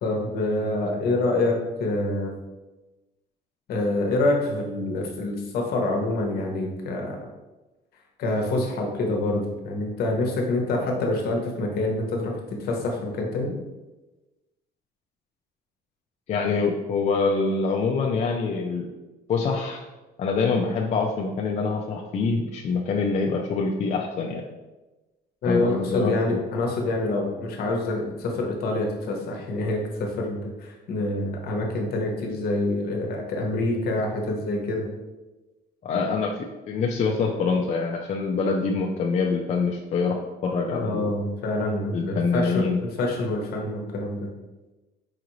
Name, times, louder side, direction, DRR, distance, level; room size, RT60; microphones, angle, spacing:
voice 1, 0.0-2.3 3.7-7.2 8.2-13.5 25.4-34.9 40.7-44.3, left 2 dB, 65° left, 1 dB, 0.9 m, -26 dB
voice 2, 16.3-18.9 19.3-19.8 20.2-24.4 25.5-26.2 35.8-36.3 36.7-41.1 41.9-42.8, left 4 dB, 45° left, 0 dB, 0.4 m, -25 dB
4.8 x 2.5 x 3.0 m, 1.1 s
cardioid pair, 110°, 17 cm